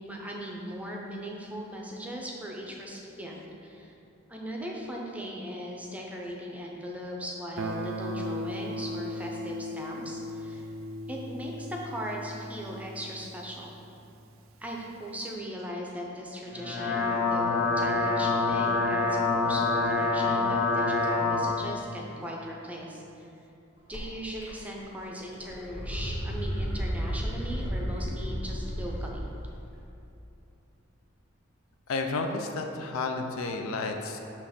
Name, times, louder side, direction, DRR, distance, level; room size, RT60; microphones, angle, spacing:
voice 1, 0.0-3.9 4.3-10.7 11.1-13.8 14.6-23.3 23.9-29.3, equal, 5° right, -2 dB, 0.5 m, -39 dB
Guitar, 7.6-14.3, equal, 75° right, 0.5 m, -37 dB
sound 1, 16.5-21.5, left 3 dB, 45° left, 0.8 m, -26 dB
sound 2, 23.9-24.0 24.4-25.0 25.3-29.2, equal, 65° left, 1.4 m, -33 dB
voice 2, 31.9-34.2, left 3 dB, 80° left, 4 dB, 0.5 m, -31 dB
6.3 x 2.9 x 5.7 m, 2.8 s
head